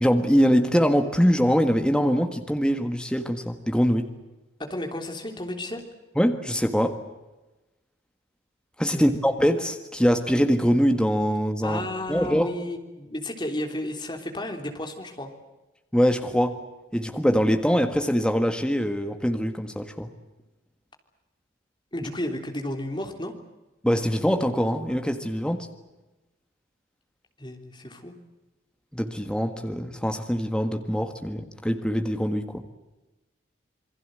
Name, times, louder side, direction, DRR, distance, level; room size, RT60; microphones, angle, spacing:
voice 1, 0.0-4.1 6.2-7.0 8.8-11.8 12.1-12.5 15.9-16.6 16.9-20.1 23.8-25.7 28.9-32.6, equal, 5° left, 6 dB, 1.6 m, -23 dB
voice 2, 4.6-5.8 8.9-9.3 11.6-15.3 21.9-23.3 27.4-28.1, left 1 dB, 25° left, 4 dB, 3.4 m, -33 dB
28.0 x 22.5 x 7.8 m, 1.1 s
head